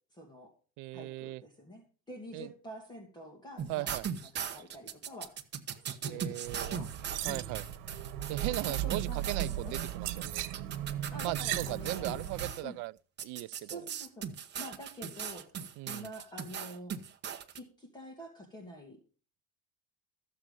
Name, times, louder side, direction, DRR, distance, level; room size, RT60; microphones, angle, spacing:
voice 1, 0.1-0.5 0.9-3.9 4.5-5.4 5.8-6.9 7.2-7.6 8.7-9.3 9.6-9.7 11.1-12.3 12.6-12.8 13.6-14.3 14.6-15.5 15.9-16.9 17.5-19.0, equal, 10° left, 2.2 m, -47 dB
voice 2, 0.8-1.4 2.3-2.5 3.7-4.1 6.1-6.8 7.2-7.6 8.3-10.4 11.2-12.9 13.2-13.8 15.8-16.1, right 19 dB, 55° right, 0.4 m, -38 dB
sound 1, 3.6-12.6 13.2-17.6, right 8 dB, 30° right, 1.1 m, -39 dB
sound 2, 6.4-12.5, right 12 dB, 75° right, 1.3 m, -37 dB
14.5 x 7.5 x 5.3 m
cardioid pair, 155°, 37 cm